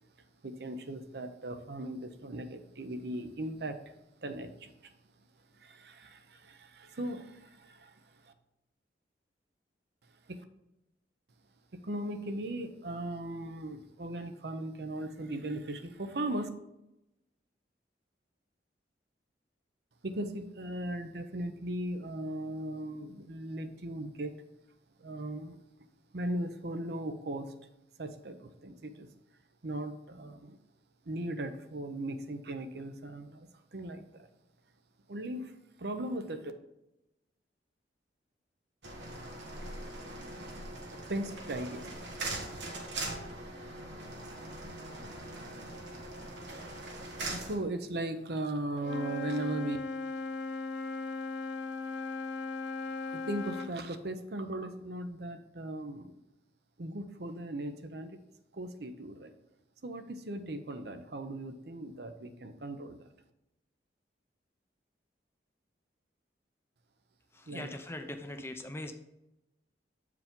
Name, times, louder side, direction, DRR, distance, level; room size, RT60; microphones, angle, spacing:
voice 1, 0.4-3.9 4.2-4.9 5.5-8.3 10.3-10.4 11.8-16.5 20.0-24.4 25.0-25.6 26.1-27.5 28.0-29.1 29.6-30.6 31.1-34.3 35.1-35.5 35.8-36.5 41.1-41.9 47.3-49.8 53.0-56.2 56.8-58.2 58.5-59.3 59.8-63.1 67.5-67.7, right 1 dB, 65° right, 8 dB, 0.7 m, -38 dB
sound 1, 38.8-47.6, right 2 dB, 85° right, 1.6 m, -41 dB
Wind instrument woodwind instrument, 48.8-53.8, left 3 dB, 80° left, 0.5 m, -37 dB
voice 2, 67.3-68.9, left 1 dB, 15° left, 7 dB, 0.5 m, -41 dB
7.9 x 4.8 x 3.7 m, 0.90 s
head